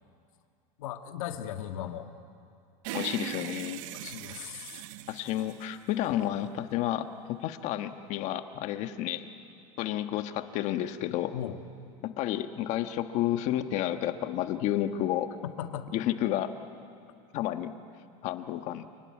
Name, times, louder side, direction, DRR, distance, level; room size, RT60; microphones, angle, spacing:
voice 1, 0.8-2.1 3.9-4.9 11.3-11.6 15.4-15.9, left 10 dB, 80° left, 6 dB, 1.7 m, -37 dB
sound 1, 2.8-6.3, right 14 dB, 65° right, 0.9 m, -40 dB
voice 2, 2.9-3.8 5.1-9.3 9.8-11.3 12.0-15.3 15.9-16.5 17.3-17.7 18.2-18.9, left 12 dB, 45° left, 8 dB, 1.3 m, -31 dB
28.0 x 18.5 x 9.6 m, 2.4 s
supercardioid pair, 155°, 17 cm